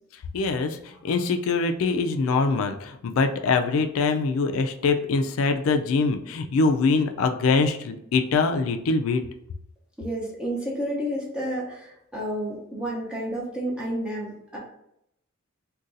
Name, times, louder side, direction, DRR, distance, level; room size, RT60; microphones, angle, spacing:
voice 1, 0.3-9.2, left 4 dB, 75° left, 6 dB, 0.4 m, -23 dB
voice 2, 10.0-14.6, equal, 5° right, -5 dB, 0.7 m, -30 dB
2.5 x 2.3 x 3.8 m, 0.76 s
head